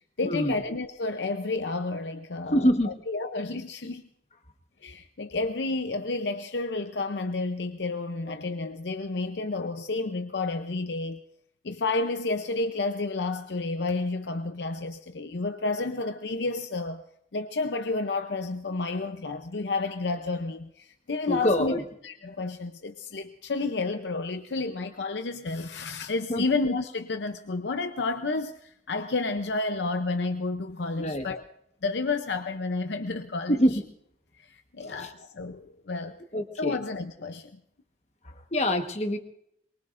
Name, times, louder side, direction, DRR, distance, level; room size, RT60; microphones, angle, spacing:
voice 1, 0.2-4.0 4.8-11.2 11.6-17.0 17.3-31.4 31.8-33.6 34.5-36.2 36.6-37.6, left 3 dB, 80° left, 0.7 m, -31 dB
voice 2, 2.5-2.9 8.3-8.4 21.3-21.8 26.3-26.4 31.0-31.3 33.5-33.8 34.8-35.1 36.3-36.8 38.2-39.2, equal, 40° left, 1.4 m, -25 dB
23.5 x 23.0 x 2.6 m
head